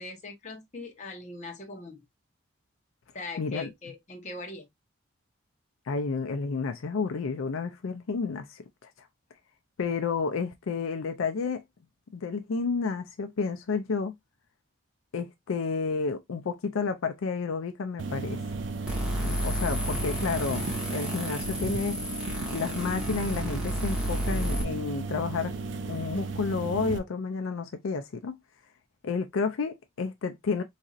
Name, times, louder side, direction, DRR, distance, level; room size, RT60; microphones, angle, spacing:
voice 1, 0.0-2.0 3.1-4.7, left 3 dB, 35° left, 0.8 m, -41 dB
voice 2, 3.4-3.7 5.9-8.6 9.0-9.1 9.8-11.6 12.1-14.1 15.1-18.4 19.2-22.0 22.5-25.6 25.9-28.3 29.0-30.6, left 4 dB, 80° left, 0.4 m, -31 dB
sound 1, 18.0-27.0, right 3 dB, 60° right, 0.5 m, -35 dB
sound 2, 18.9-24.6, equal, 5° right, 1.0 m, -32 dB
4.0 x 2.7 x 2.4 m
head